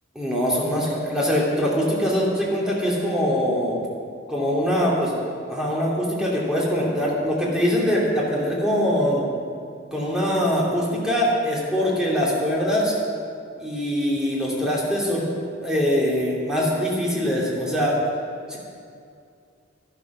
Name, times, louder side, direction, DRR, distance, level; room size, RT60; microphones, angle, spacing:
voice 1, 0.1-3.8 4.3-5.1 5.5-9.2 9.9-12.9 13.6-15.3 15.6-18.0 18.5-18.6, equal, 5° right, -5 dB, 2.8 m, -23 dB
12.0 x 11.5 x 6.1 m, 2.4 s
head